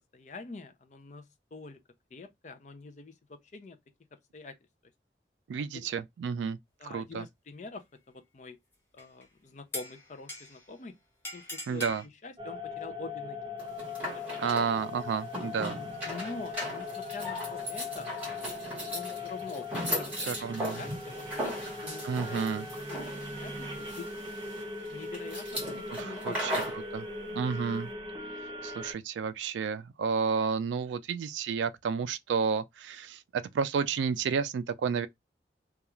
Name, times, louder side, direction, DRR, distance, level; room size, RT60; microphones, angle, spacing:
voice 1, 0.1-1.8 2.1-3.8 4.3-4.6 5.6-5.9 6.8-8.6 8.9-10.9 11.3-11.8 12.2-13.5 14.1-14.5 16.0-18.1 18.9-20.1 20.4-21.5 21.8-22.4 23.3-24.1 24.9-26.6, left 3 dB, 40° left, 0.4 m, -45 dB
voice 2, 5.5-6.6 6.9-7.2 11.7-12.0 14.4-15.8 20.3-20.8 22.0-22.7 25.9-27.1 27.3-27.9 28.6-35.1, right 6 dB, 85° right, 0.3 m, -31 dB
sound 1, 9.0-9.2 9.7-10.7 11.2-12.1, left 1 dB, 15° left, 0.8 m, -41 dB
sound 2, 12.4-28.9, left 3 dB, 25° right, 0.7 m, -40 dB
sound 3, 13.6-26.8, equal, 10° right, 1.1 m, -38 dB
2.3 x 2.3 x 2.9 m
head